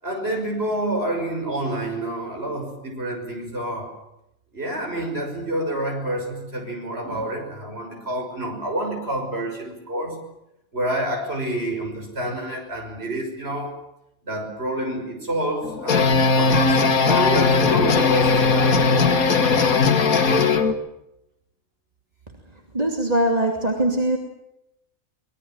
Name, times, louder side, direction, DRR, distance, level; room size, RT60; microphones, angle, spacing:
voice 1, 0.0-4.0 4.5-10.2 10.7-13.8 14.2-19.4, right 1 dB, 45° right, 6.5 m, -28 dB
sound 1, 15.6-20.7, left 4 dB, 80° left, 2.0 m, -18 dB
voice 2, 22.7-24.2, right 1 dB, 25° right, 2.9 m, -21 dB
25.0 x 21.5 x 7.6 m
omnidirectional pair, 1.5 m